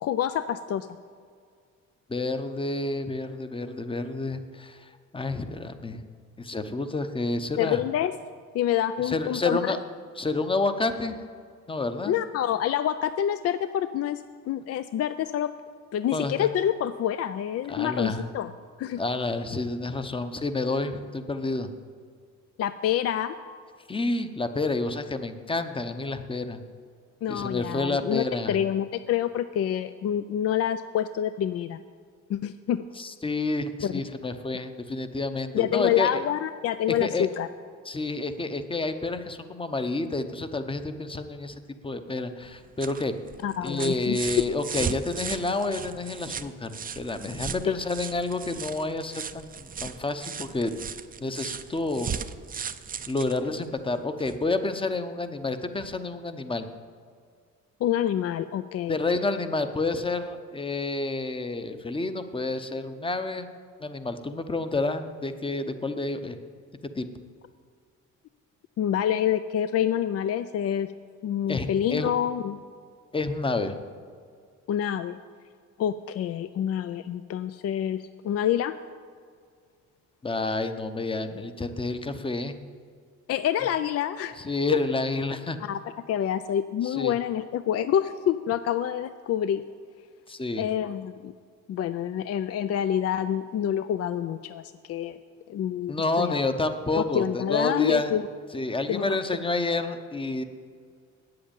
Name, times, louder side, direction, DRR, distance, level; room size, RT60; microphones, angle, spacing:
voice 1, 0.0-0.9 7.6-8.1 8.5-9.8 12.1-15.5 15.9-18.5 18.8-19.0 22.6-23.3 27.2-31.8 32.3-32.8 33.8-33.9 35.5-37.5 43.4-44.2 47.6-47.8 57.8-59.0 68.8-70.9 71.2-72.6 74.7-75.2 75.8-78.7 83.3-84.4 84.7-84.8 85.6-85.8 86.1-89.6 90.6-91.3 91.7-95.2 95.5-96.4 96.9-98.2 98.9-99.2, left 10 dB, 55° left, 12 dB, 0.4 m, -27 dB
voice 2, 2.1-6.0 6.4-7.8 9.0-9.8 10.2-11.2 11.7-12.2 16.1-16.5 17.7-18.3 19.0-21.7 23.9-26.6 27.3-28.6 33.0-36.2 36.9-37.3 37.9-41.6 41.8-43.2 43.6-50.7 51.2-52.1 53.1-56.7 58.9-63.5 63.8-66.4 66.8-67.1 71.5-72.1 73.1-73.8 80.2-82.6 84.4-85.6 86.8-87.1 90.3-90.7 95.9-98.1 98.5-100.4, left 2 dB, 15° left, 9 dB, 0.8 m, -29 dB
sound 1, 42.4-54.5 55.8-55.9, right 6 dB, 30° right, 0.5 m, -37 dB
7.9 x 7.8 x 8.8 m, 2.1 s
cardioid pair, 90°, 30 cm